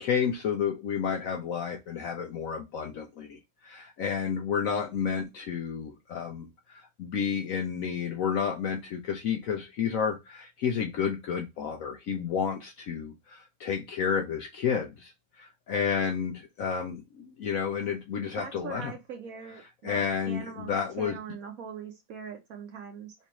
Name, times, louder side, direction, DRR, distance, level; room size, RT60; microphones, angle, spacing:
voice 1, 0.0-18.9 19.8-21.2, left 7 dB, 75° left, 0.8 m, -31 dB
voice 2, 18.4-23.1, right 6 dB, 65° right, 0.9 m, -42 dB
3.3 x 3.1 x 2.9 m
omnidirectional pair, 2.0 m